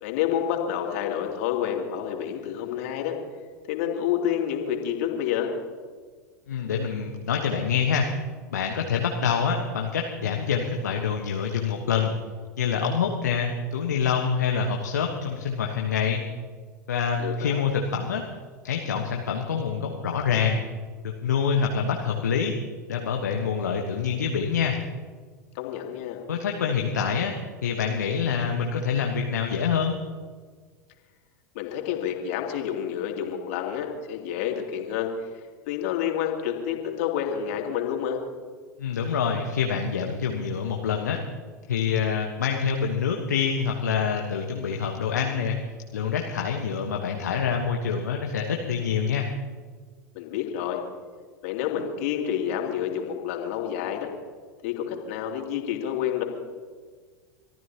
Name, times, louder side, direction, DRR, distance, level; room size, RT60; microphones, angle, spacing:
voice 1, 0.0-3.2 3.7-5.5 17.2-17.7 25.5-26.2 31.5-38.2 50.1-50.8 51.4-54.1 54.6-56.2, left 9 dB, 55° left, 1 dB, 3.0 m, -29 dB
voice 2, 6.5-8.1 8.5-12.2 12.6-16.2 16.9-18.2 18.6-20.6 21.0-22.5 22.9-24.8 26.3-27.3 27.6-30.0 38.8-41.2 41.7-45.6 45.9-49.3, left 6 dB, 70° left, 1 dB, 1.3 m, -26 dB
25.0 x 14.0 x 3.0 m, 1.5 s
figure-of-eight pair, 85°, 10 cm